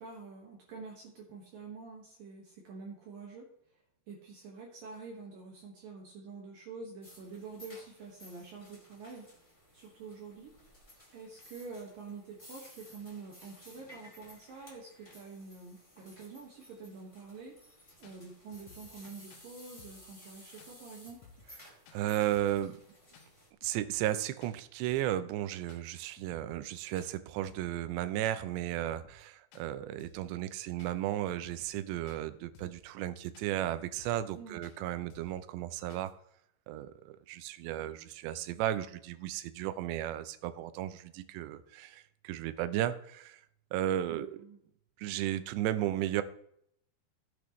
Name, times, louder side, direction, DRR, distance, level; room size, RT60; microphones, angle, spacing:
voice 1, 0.0-3.5 4.1-9.3 9.7-10.5 11.1-17.5 18.0-21.3 34.4-34.6 44.1-44.6, right 4 dB, 60° right, -1 dB, 2.9 m, -47 dB
sound 1, 7.0-23.5, left 1 dB, 10° left, 1.7 m, -56 dB
sound 2, 17.5-17.6 18.0-18.2 18.5-19.0 19.3-19.5 19.8-20.1 20.6-20.7 21.1-21.6 21.9-22.0 22.3-22.6 23.1-23.3 23.6-24.1 24.4-24.6 24.9-25.2 25.7-25.9 26.2-26.7 27.0-27.1 27.4-27.8 28.2-28.4 28.7-29.3 29.5-29.7 30.0-30.3 30.8-30.9 31.3-31.8 32.1-32.2 32.6-32.9 33.3-33.5 33.8-34.4 34.6-34.8 35.1-35.4 35.9-36.1, left 5 dB, 70° left, 2.1 m, -57 dB
voice 2, 21.9-22.8 23.6-36.1 36.7-43.4 43.7-44.4 45.0-46.2, right 12 dB, 85° right, 13 dB, 2.8 m, -34 dB
15.5 x 8.2 x 3.1 m, 0.72 s
omnidirectional pair, 4.9 m